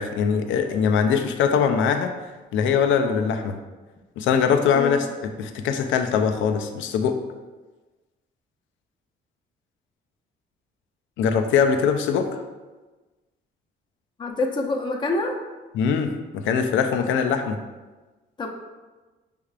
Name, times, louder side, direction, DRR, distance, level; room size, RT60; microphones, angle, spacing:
voice 1, 0.0-2.1 2.5-3.6 4.2-7.2 11.2-12.4 15.7-17.6, left 6 dB, 80° left, 6 dB, 0.4 m, -22 dB
voice 2, 14.2-15.4 18.4-18.5, left 2 dB, 25° left, 0 dB, 0.6 m, -26 dB
5.5 x 3.4 x 2.4 m, 1.2 s
cardioid pair, 90°, 20 cm